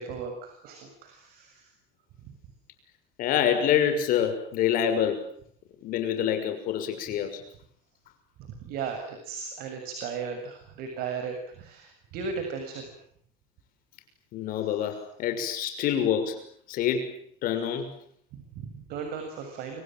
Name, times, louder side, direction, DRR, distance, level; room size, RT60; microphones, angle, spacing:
voice 1, 0.0-1.7 2.3-2.4 8.5-13.0 18.3-19.8, right 5 dB, 55° right, 5 dB, 7.1 m, -36 dB
voice 2, 3.2-5.2 5.8-7.4 14.3-16.4 16.7-17.2 17.4-17.9, left 9 dB, 50° left, 7 dB, 6.3 m, -26 dB
29.5 x 25.5 x 7.8 m, 0.64 s
cardioid pair, 160°, 19 cm